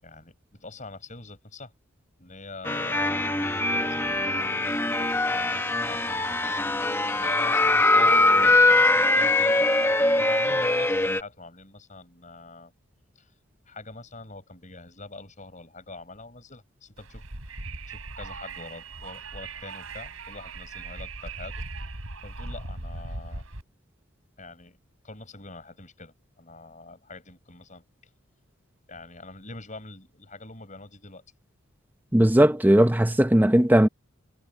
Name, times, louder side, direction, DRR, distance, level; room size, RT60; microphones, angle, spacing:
voice 1, 0.0-1.7 2.2-3.0 3.5-6.7 7.1-9.7 10.2-12.7 13.1-13.3 13.6-17.2 17.9-21.6 22.2-23.4 24.4-24.8 25.0-27.8 28.9-31.2, left 3 dB, 35° left, 6.6 m, -45 dB
sound 1, 2.6-11.2, left 2 dB, 10° left, 1.2 m, -22 dB
Wind, 17.0-23.6, right 3 dB, 85° right, 4.4 m, -39 dB
voice 2, 32.1-33.9, right 1 dB, 10° right, 0.7 m, -18 dB
head